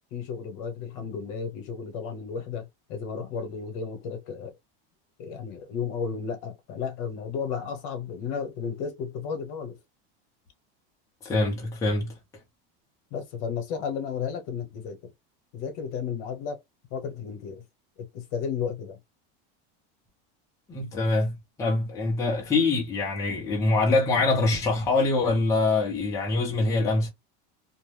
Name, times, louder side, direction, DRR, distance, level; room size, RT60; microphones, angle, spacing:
voice 1, 0.1-4.5 5.2-9.8 13.1-15.0 15.5-16.6 16.9-17.6 18.0-19.0, left 6 dB, 55° left, 1.1 m, -33 dB
voice 2, 11.2-12.2 20.7-27.1, left 3 dB, 10° left, 0.6 m, -24 dB
2.6 x 2.2 x 3.2 m
cardioid pair, 175°, 29 cm